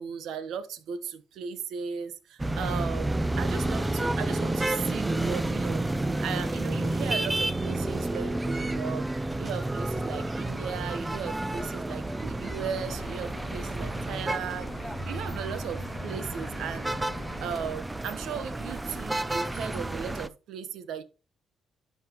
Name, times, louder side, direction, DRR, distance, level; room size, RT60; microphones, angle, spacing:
voice 1, 0.0-9.1 9.4-16.9 17.4-21.0, right 7 dB, 80° right, 1.0 m, -37 dB
sound 1, 2.4-20.3, right 2 dB, 15° right, 0.6 m, -30 dB
sound 2, 12.4-17.6, left 9 dB, 75° left, 0.7 m, -46 dB
12.0 x 5.8 x 3.0 m
cardioid pair, 90°, 0 cm